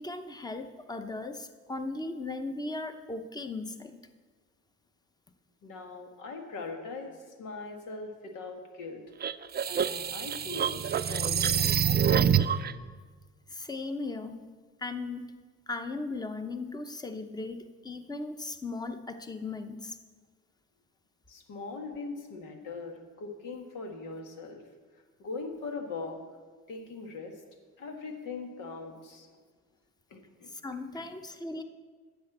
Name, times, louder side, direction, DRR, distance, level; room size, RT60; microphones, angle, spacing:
voice 1, 0.0-4.0 13.5-14.5 14.8-15.3 15.7-20.0 30.5-31.6, left 3 dB, 15° left, 9 dB, 0.8 m, -37 dB
voice 2, 5.6-9.0 9.7-12.4 21.3-24.6 25.2-26.2 26.7-27.4 27.8-29.4 30.1-30.5 30.9-31.1, left 4 dB, 90° left, 4 dB, 1.7 m, -41 dB
sound 1, 9.2-12.7, right 8 dB, 35° right, 0.4 m, -26 dB
10.5 x 6.7 x 7.9 m, 1.5 s
cardioid pair, 90°, 30 cm